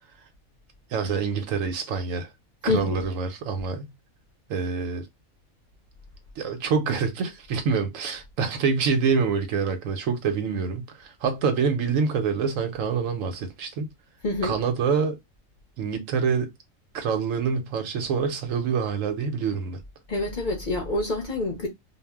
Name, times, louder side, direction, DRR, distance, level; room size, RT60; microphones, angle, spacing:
voice 1, 0.9-2.3 2.6-3.9 4.5-5.1 6.4-13.9 14.4-15.2 15.8-16.5 16.9-19.8, right 5 dB, 75° right, 1.0 m, -26 dB
voice 2, 2.7-3.0 14.2-14.6 20.1-21.7, left 2 dB, 45° left, 0.7 m, -27 dB
2.5 x 2.0 x 3.4 m
omnidirectional pair, 1.4 m